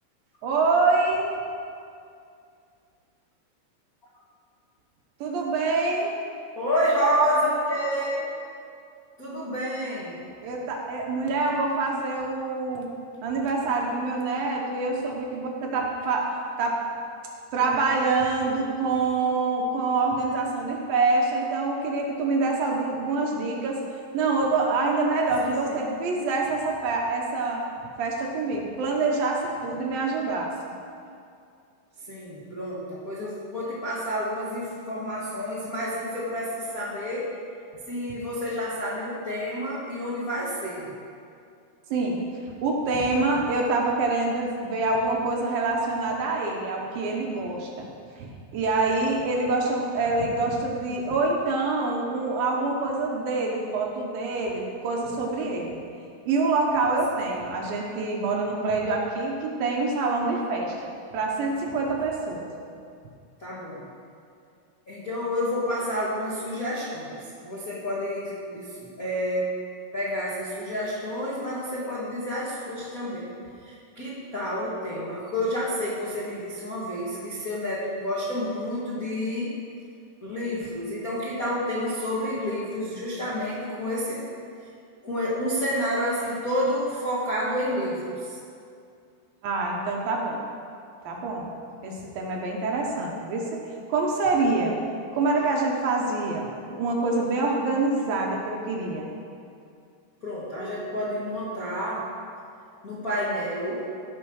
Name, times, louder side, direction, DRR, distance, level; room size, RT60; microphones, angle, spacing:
voice 1, 0.4-1.3 5.2-6.1 10.4-12.9 13.2-16.3 16.6-16.8 17.5-23.8 24.1-27.6 28.0-30.5 41.9-47.9 48.2-55.8 56.3-60.8 61.1-62.5 89.4-90.4 91.0-91.5 91.8-94.8 95.1-99.1, right 3 dB, 70° right, -1 dB, 2.4 m, -26 dB
voice 2, 6.5-8.2 9.2-10.2 25.4-25.5 25.8-25.9 32.1-37.3 37.9-40.9 63.4-63.9 64.9-69.5 69.9-73.3 73.6-79.5 80.2-84.2 85.0-88.4 100.2-102.0 102.8-103.8, equal, 90° left, -8 dB, 0.7 m, -29 dB
15.5 x 5.8 x 6.3 m, 2.4 s
omnidirectional pair, 5.0 m